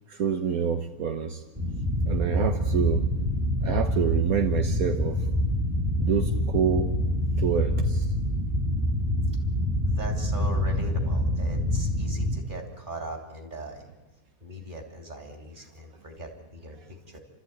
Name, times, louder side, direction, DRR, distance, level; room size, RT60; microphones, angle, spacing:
voice 1, 0.1-1.4 2.0-3.0 3.6-5.2 6.0-6.9 7.4-8.1, right 7 dB, 75° right, 6 dB, 1.5 m, -27 dB
sound 1, 1.6-12.4, equal, 15° right, 2.2 m, -26 dB
voice 2, 9.8-13.9 14.4-17.2, right 1 dB, 35° right, 3 dB, 3.3 m, -40 dB
30.0 x 13.5 x 9.2 m, 1.1 s
omnidirectional pair, 1.5 m